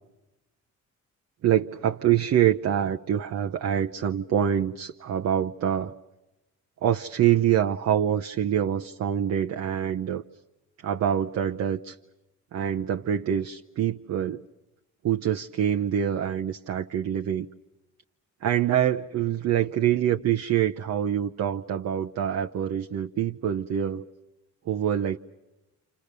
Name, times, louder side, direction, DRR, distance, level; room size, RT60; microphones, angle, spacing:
voice 1, 1.4-5.9 6.8-10.2 10.8-12.0 12.5-14.4 15.0-17.5 18.4-24.0 24.7-25.2, right 10 dB, 60° right, 0.8 m, -25 dB
28.5 x 28.0 x 6.8 m
cardioid pair, 90°, 30 cm